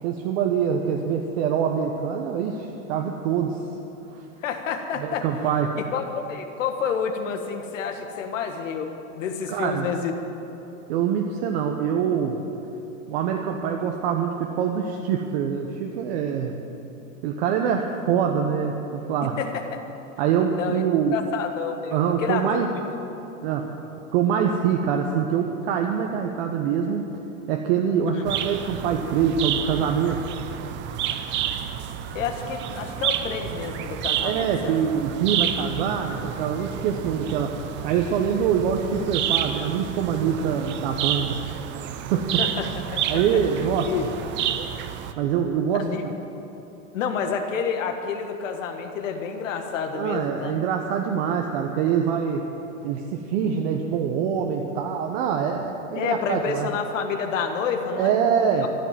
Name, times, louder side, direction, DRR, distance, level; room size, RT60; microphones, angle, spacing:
voice 1, 0.0-3.6 5.0-5.8 9.5-9.9 10.9-12.4 13.1-16.5 17.2-19.4 20.2-21.2 21.9-22.7 23.4-23.7 24.1-27.0 27.5-30.3 34.2-37.6 37.8-42.4 43.1-43.9 45.2-46.1 49.9-52.4 52.8-56.7 58.0-58.7, right 7 dB, 50° right, 2 dB, 1.3 m, -24 dB
voice 2, 4.4-5.3 5.8-6.0 6.3-10.1 19.2-19.7 20.5-20.8 21.1-22.7 28.1-28.3 32.1-34.9 42.4-43.2 43.8-44.0 45.7-46.1 46.9-50.6 55.9-58.2 58.6-58.7, left 6 dB, 75° left, 5 dB, 1.8 m, -29 dB
sound 1, 28.3-45.1, right 10 dB, 30° right, 0.7 m, -30 dB
14.0 x 11.0 x 7.6 m, 3.0 s
supercardioid pair, 140°, 38 cm